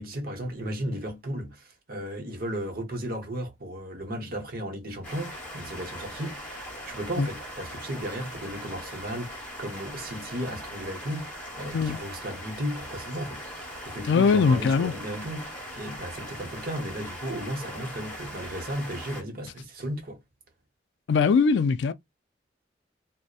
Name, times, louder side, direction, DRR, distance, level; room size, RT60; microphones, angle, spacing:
voice 1, 0.0-20.2, equal, 50° right, 0.9 m, -35 dB
sound 1, 5.0-19.2, equal, 5° left, 1.0 m, -40 dB
voice 2, 14.1-14.9 21.1-21.9, left 5 dB, 70° left, 0.3 m, -21 dB
2.7 x 2.1 x 2.3 m
head